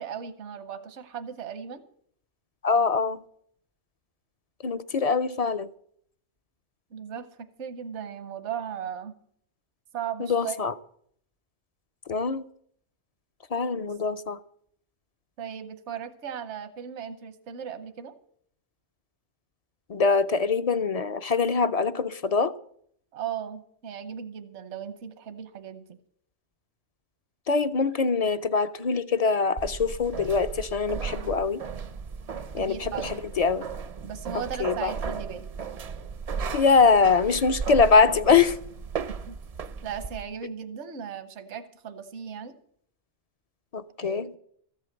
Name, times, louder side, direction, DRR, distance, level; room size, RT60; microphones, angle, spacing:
voice 1, 0.0-1.8 6.9-9.1 9.9-10.6 15.4-18.2 23.1-26.0 32.6-33.1 34.0-35.5 39.1-39.4 39.8-42.6 44.0-44.4, right 8 dB, 80° right, 1.2 m, -37 dB
voice 2, 2.6-3.2 4.6-5.7 10.3-10.7 12.1-12.4 13.5-14.4 19.9-22.5 27.5-31.6 32.5-33.7 34.6-34.9 36.5-38.6 43.7-44.3, left 5 dB, 45° left, 0.5 m, -23 dB
sound 1, 29.6-40.2, right 5 dB, 45° right, 0.5 m, -35 dB
14.5 x 8.2 x 7.9 m
omnidirectional pair, 1.2 m